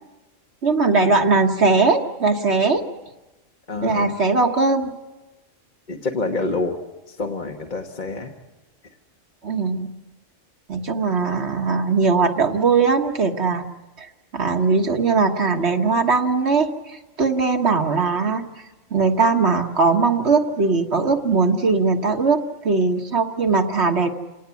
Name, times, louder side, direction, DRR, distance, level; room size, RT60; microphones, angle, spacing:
voice 1, 0.6-2.8 3.8-4.9 9.4-9.9 10.7-13.7 14.0-18.5 18.9-24.1, right 4 dB, 55° right, 4 dB, 1.6 m, -20 dB
voice 2, 3.7-4.1 5.9-6.8 7.1-8.3, left 3 dB, 40° left, 2 dB, 1.4 m, -27 dB
28.0 x 18.5 x 8.3 m, 1.1 s
omnidirectional pair, 1.3 m